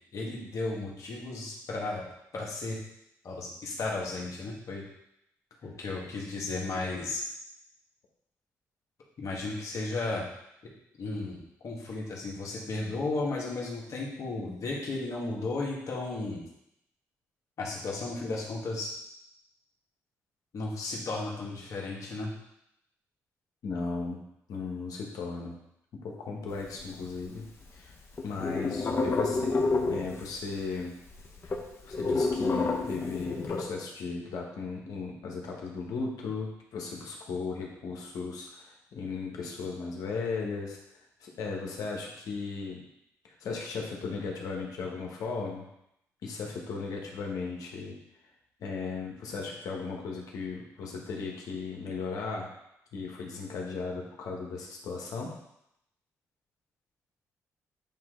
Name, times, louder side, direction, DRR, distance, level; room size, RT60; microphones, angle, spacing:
voice 1, 0.1-2.1 2.3-2.8 3.2-4.8 5.6-7.2 9.2-10.3 11.0-11.4 11.6-16.4 17.6-18.9 20.5-22.3, left 3 dB, 60° left, -3 dB, 1.9 m, -34 dB
voice 2, 23.6-24.2 24.5-25.5 26.0-27.4 27.7-27.9 28.2-30.9 31.4-31.5 31.9-40.8 41.2-42.8 43.4-45.7 46.2-47.9 48.6-52.5 52.9-55.3, left 4 dB, 75° left, -1 dB, 1.5 m, -36 dB
sound 1, 26.5-27.6 27.9-30.5 30.8-30.9 31.1-33.6, left 3 dB, 45° left, 1.1 m, -29 dB
9.0 x 3.0 x 3.9 m, 0.80 s
cardioid pair, 70°, 6 cm